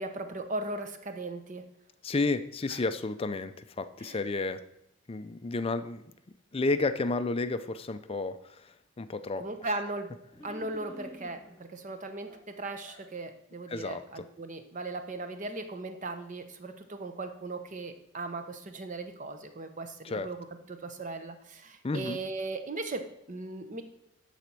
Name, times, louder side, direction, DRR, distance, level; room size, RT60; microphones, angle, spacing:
voice 1, 0.0-1.6 2.7-2.8 4.0-4.2 9.4-10.1 10.4-20.4 20.7-23.8, right 2 dB, 35° right, 8 dB, 0.8 m, -38 dB
voice 2, 2.0-4.6 5.1-6.0 6.5-9.5 13.7-14.3 20.0-20.3 21.8-22.2, left 3 dB, 25° left, 11 dB, 0.4 m, -31 dB
sound 1, 10.3-11.6 12.3-13.1, left 1 dB, 5° left, 2.7 m, -49 dB
12.0 x 4.2 x 6.0 m, 0.80 s
head